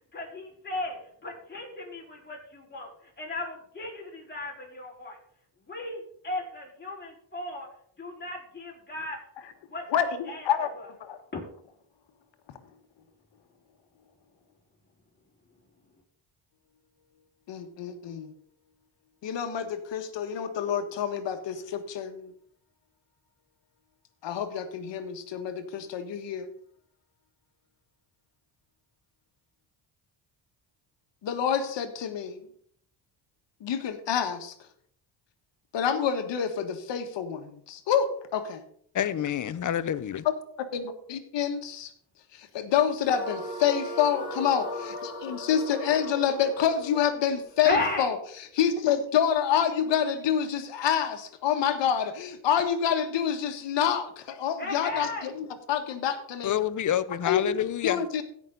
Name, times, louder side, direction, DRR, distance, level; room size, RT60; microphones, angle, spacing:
voice 1, 0.1-5.2 5.7-7.7 8.0-9.2 9.7-9.9 10.3-10.9 11.3-11.4 43.8-44.7 47.6-48.1 54.6-55.3, left 2 dB, 25° left, 4.6 m, -35 dB
voice 2, 9.9-10.7 11.0-11.2 17.5-18.3 19.2-22.3 24.2-26.5 31.2-32.4 33.6-34.5 35.7-38.6 40.7-41.9 42.3-56.5 57.2-58.2, left 8 dB, 70° left, 1.6 m, -28 dB
voice 3, 38.9-40.2 56.4-58.0, left 10 dB, 40° left, 0.7 m, -28 dB
sound 1, 43.0-48.2, left 1 dB, 10° right, 4.8 m, -38 dB
16.5 x 6.1 x 4.0 m
cardioid pair, 80°, 45 cm